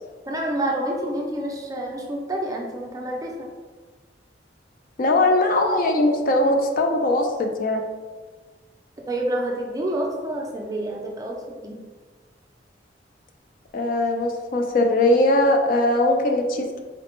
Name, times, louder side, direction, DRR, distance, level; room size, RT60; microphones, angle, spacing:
voice 1, 0.3-3.5 9.1-11.8, right 1 dB, 20° right, 0 dB, 0.4 m, -28 dB
voice 2, 5.0-7.8 13.7-16.8, left 1 dB, 50° left, 3 dB, 0.4 m, -20 dB
4.0 x 2.1 x 2.9 m, 1.4 s
head